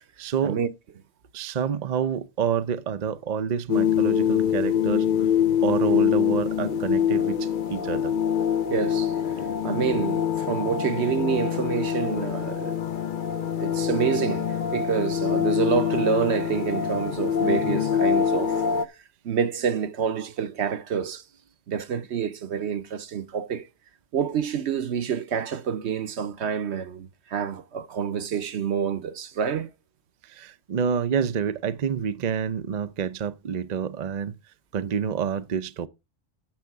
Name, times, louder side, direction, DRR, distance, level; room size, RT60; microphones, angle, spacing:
voice 1, 0.2-0.6 1.3-5.1 5.6-8.2 30.2-34.3 34.7-35.9, right 7 dB, 45° right, 0.6 m, -28 dB
sound 1, 3.7-18.8, left 8 dB, 50° left, 0.8 m, -25 dB
voice 2, 8.7-9.1 9.6-12.8 13.6-18.6 19.2-21.2 21.7-23.7 24.1-29.7, right 7 dB, 65° right, 1.0 m, -27 dB
10.5 x 6.4 x 4.7 m
omnidirectional pair, 1.2 m